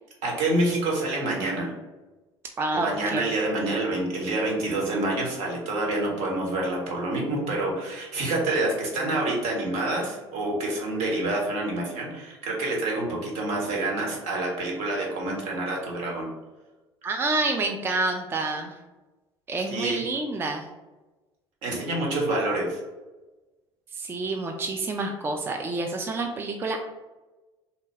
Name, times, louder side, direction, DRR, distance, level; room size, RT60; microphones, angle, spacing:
voice 1, 0.2-1.7 2.8-16.3 19.6-20.0 21.6-22.8, right 2 dB, 60° right, -2 dB, 1.0 m, -27 dB
voice 2, 2.6-3.3 17.0-18.8 19.5-20.7 23.9-26.8, right 2 dB, 20° right, 4 dB, 0.3 m, -28 dB
2.8 x 2.2 x 3.2 m, 1.1 s
figure-of-eight pair, 65°, 13 cm